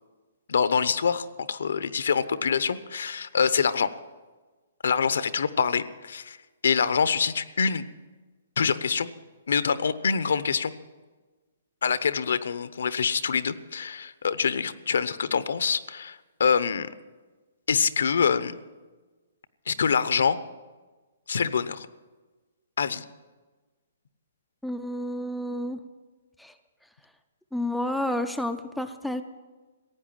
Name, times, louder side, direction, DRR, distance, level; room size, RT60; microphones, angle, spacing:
voice 1, 0.5-3.9 4.8-6.4 6.6-7.8 8.6-9.1 9.5-10.7 11.8-16.9 17.7-18.5 19.7-20.4 21.3-21.9 22.8-23.0, left 6 dB, 70° left, 14 dB, 0.9 m, -25 dB
voice 2, 24.6-25.8 26.4-26.5 27.5-29.2, left 1 dB, ahead, 7 dB, 0.4 m, -30 dB
15.5 x 9.3 x 8.9 m, 1.3 s
hypercardioid pair, 180°, 0 cm